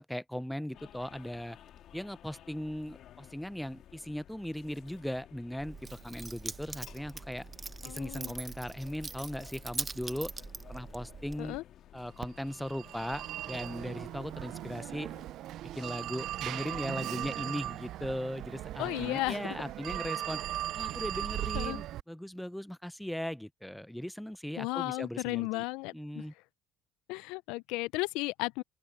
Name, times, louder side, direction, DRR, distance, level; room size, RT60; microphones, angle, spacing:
voice 1, 0.0-1.6 1.9-7.5 7.8-10.3 10.7-11.6 11.9-15.1 15.7-20.4 20.7-25.6 25.9-26.3, equal, 5° left, 0.5 m, -38 dB
sound 1, 0.7-15.3, left 11 dB, 65° left, 2.3 m, -55 dB
Keys jangling, 5.6-11.6, right 4 dB, 25° right, 0.9 m, -42 dB
voice 2, 7.8-8.3 11.4-11.6 18.8-19.4 21.5-21.8 24.6-26.2 27.1-28.6, left 23 dB, 85° left, 0.4 m, -34 dB
Telephone, 12.2-22.0, right 13 dB, 70° right, 0.4 m, -38 dB
open air
supercardioid pair, 85°, 0 cm